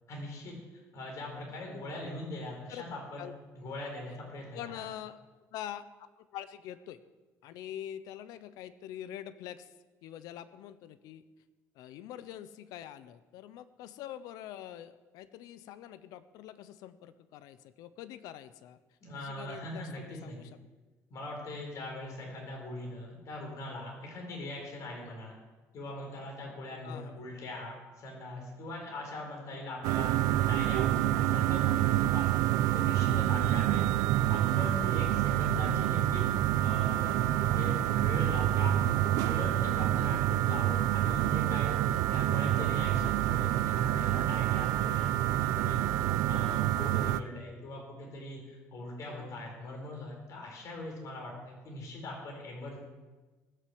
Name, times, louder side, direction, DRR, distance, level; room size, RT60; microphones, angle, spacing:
voice 1, 0.1-0.5 0.9-3.3 3.5-4.9 19.0-20.4 21.1-25.3 25.7-38.7 39.3-45.1 45.4-52.8, left 2 dB, 60° left, 0 dB, 4.6 m, -41 dB
voice 2, 4.5-5.2 5.5-7.0 7.4-9.7 10.0-11.2 11.8-18.8 19.1-20.5 26.8-27.2 29.5-29.8 34.3-34.5 38.7-39.0 44.8-44.9 49.2-49.3, left 11 dB, 80° left, 14 dB, 0.8 m, -45 dB
sound 1, 29.8-47.2, right 13 dB, 85° right, 0.5 m, -27 dB
18.5 x 6.7 x 7.8 m, 1.2 s
cardioid pair, 90°, 6 cm